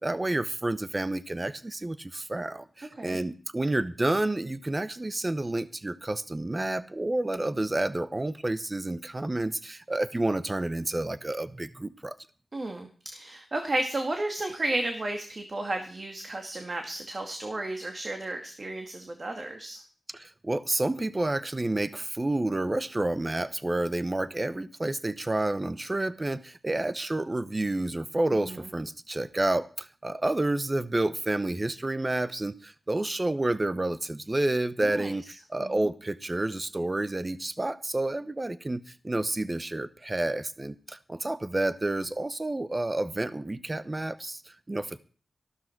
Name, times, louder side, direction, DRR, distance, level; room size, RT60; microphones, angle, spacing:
voice 1, 0.0-12.2 20.1-45.0, right 2 dB, 25° right, 14 dB, 0.8 m, -29 dB
voice 2, 12.5-19.8 28.4-28.7 34.8-35.1 35.6-35.9, right 2 dB, 40° right, 4 dB, 2.2 m, -33 dB
14.0 x 12.5 x 4.6 m, 0.40 s
wide cardioid pair, 90°, 0 cm